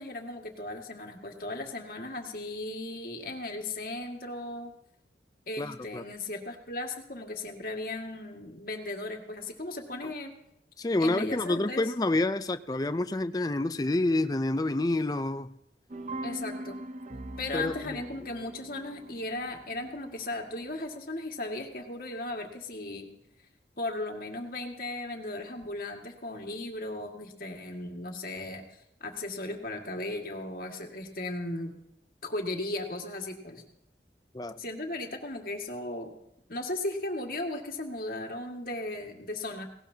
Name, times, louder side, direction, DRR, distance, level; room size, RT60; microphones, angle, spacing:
voice 1, 0.0-4.7 5.5-10.3 11.0-11.8 16.2-16.8 17.4-23.1 23.8-28.7 29.0-31.7 32.2-33.6 34.6-36.1 36.5-39.7, left 2 dB, 50° left, 2 dB, 2.0 m, -36 dB
voice 2, 5.6-6.0 10.0-10.1 10.8-15.6 17.5-18.0 34.3-34.6, left 2 dB, 20° left, 10 dB, 0.4 m, -28 dB
sound 1, 15.9-20.9, right 1 dB, 40° right, 0.6 m, -42 dB
18.5 x 18.0 x 2.8 m, 0.81 s
head